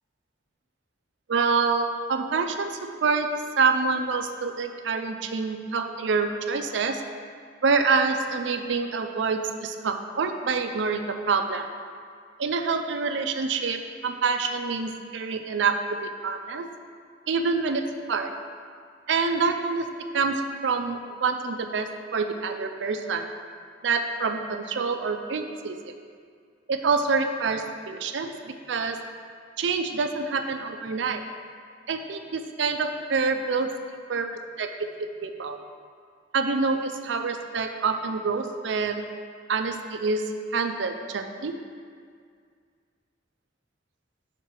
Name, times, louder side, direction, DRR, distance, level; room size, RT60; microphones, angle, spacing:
voice 1, 1.3-3.3 3.6-7.0 7.6-11.7 12.4-15.7 16.0-16.7 17.3-17.8 18.1-18.3 19.1-19.9 20.1-23.2 23.8-25.8 26.7-29.0 29.6-31.2 31.9-34.7 35.2-35.6 36.3-39.0 39.5-40.2 40.5-41.5, right 4 dB, 75° right, 6 dB, 0.4 m, -26 dB
5.8 x 4.5 x 4.7 m, 2.1 s
head